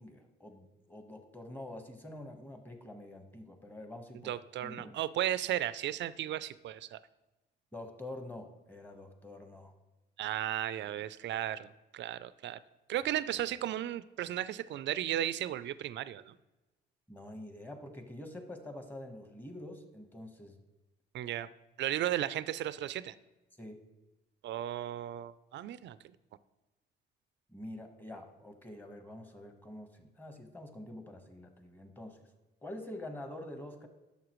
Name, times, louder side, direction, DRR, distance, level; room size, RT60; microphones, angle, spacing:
voice 1, 0.0-4.3 4.6-5.0 7.7-9.7 17.1-20.6 23.6-23.8 27.5-32.2 32.6-33.9, left 1 dB, 10° left, 6 dB, 1.2 m, -46 dB
voice 2, 4.2-7.0 10.2-12.6 12.9-16.4 21.1-21.5 21.8-23.1 24.4-26.0, right 12 dB, 65° right, 16 dB, 0.4 m, -35 dB
11.0 x 6.7 x 3.1 m, 1.1 s
cardioid pair, 90°, 20 cm